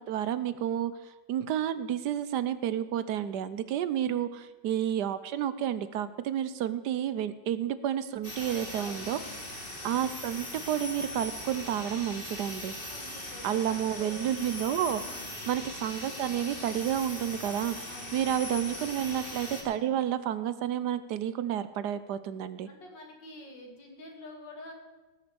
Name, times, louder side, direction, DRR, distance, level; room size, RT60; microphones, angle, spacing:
voice 1, 0.0-9.2 9.8-12.7 13.4-15.0 15.5-17.8 18.1-22.7, right 10 dB, 75° right, 14 dB, 1.2 m, -30 dB
sound 1, 8.2-19.6, left 1 dB, 30° left, 2.8 m, -40 dB
voice 2, 8.4-9.4 12.9-14.2 15.0-15.3 17.8-18.5 22.7-24.7, left 1 dB, 85° left, 2 dB, 3.1 m, -48 dB
18.5 x 6.6 x 7.0 m, 1.2 s
omnidirectional pair, 1.9 m